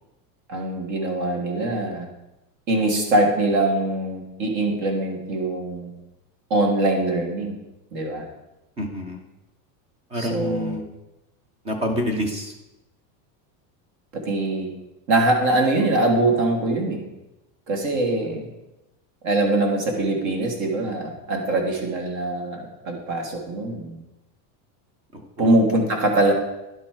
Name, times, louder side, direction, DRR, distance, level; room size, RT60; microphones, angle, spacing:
voice 1, 0.5-2.1 2.7-5.9 6.5-7.6 7.9-8.3 10.1-10.8 14.1-14.7 15.1-17.0 17.7-18.5 19.2-24.0 25.4-26.3, right 2 dB, 50° right, 2 dB, 1.8 m, -23 dB
voice 2, 8.8-9.2 10.1-10.8 11.6-12.5 25.1-25.5, equal, 15° right, 5 dB, 0.3 m, -27 dB
11.0 x 4.2 x 4.4 m, 0.95 s
supercardioid pair, 165°, 45 cm